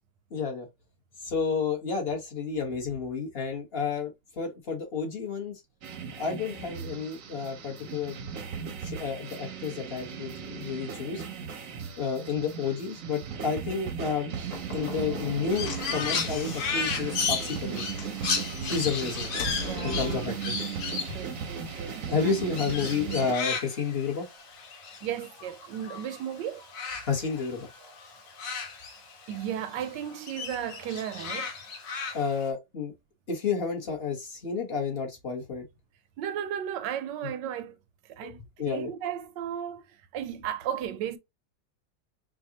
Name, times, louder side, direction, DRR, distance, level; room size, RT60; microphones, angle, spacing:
voice 1, 0.3-0.7 1.2-5.5 6.2-8.2 8.8-11.2 12.0-14.3 14.7-17.8 18.6-19.3 19.8-20.5 21.1-21.2 22.1-24.3 27.0-27.7 32.1-32.9 33.3-35.6 38.2-38.3 38.6-38.9, left 5 dB, 40° left, 1.2 m, -31 dB
sound 1, 5.8-23.3, right 7 dB, 60° right, 0.9 m, -37 dB
Slam / Knock, 14.4-20.3, left 3 dB, 60° left, 1.2 m, -40 dB
Crow, 15.5-26.2 26.5-29.5 29.8-32.5, left 5 dB, 80° left, 1.7 m, -34 dB
voice 2, 19.5-20.4 21.1-22.3 25.0-26.6 29.3-31.5 36.2-37.8 38.0-41.2, right 9 dB, 80° right, 1.2 m, -35 dB
4.9 x 2.4 x 2.8 m
omnidirectional pair, 2.0 m